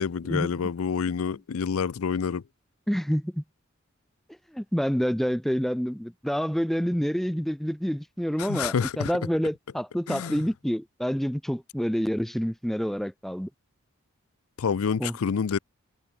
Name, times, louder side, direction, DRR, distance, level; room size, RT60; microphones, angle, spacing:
voice 1, 0.0-2.4 8.4-9.1 10.1-10.4 14.6-15.6, left 6 dB, 90° left, 0.5 m, -28 dB
voice 2, 2.9-3.4 4.5-13.5 15.0-15.2, equal, ahead, 0.6 m, -28 dB
head